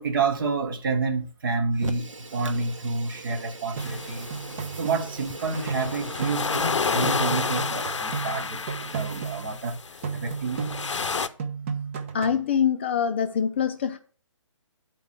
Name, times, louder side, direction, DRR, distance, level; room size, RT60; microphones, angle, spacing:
voice 1, 0.0-4.3 4.8-8.7 8.9-10.7, right 4 dB, 40° right, 1.1 m, -29 dB
Fire, 1.7-7.4, right 2 dB, 70° right, 1.2 m, -41 dB
sound 1, 3.8-11.3, left 5 dB, 65° left, 0.6 m, -31 dB
sound 2, 3.8-6.8 7.0-9.7 10.0-11.1 11.4-12.5, right 6 dB, 25° right, 0.6 m, -34 dB
voice 2, 12.1-14.0, left 7 dB, 20° left, 0.4 m, -24 dB
9.2 x 4.5 x 6.4 m
figure-of-eight pair, 140°, 17 cm